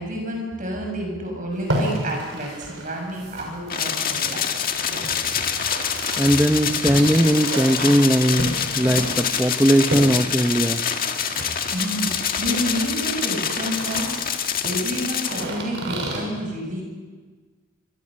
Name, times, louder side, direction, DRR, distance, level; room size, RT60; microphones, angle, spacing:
voice 1, 0.0-4.5 11.7-16.8, equal, 40° right, 1 dB, 6.8 m, -29 dB
sound 1, 1.5-16.2, right 1 dB, 65° right, 6.8 m, -33 dB
sound 2, 3.7-15.4, left 7 dB, 45° left, 1.9 m, -26 dB
voice 2, 6.2-10.8, equal, 10° right, 9 dB, 0.8 m, -19 dB
26.5 x 25.0 x 6.5 m, 1.4 s
head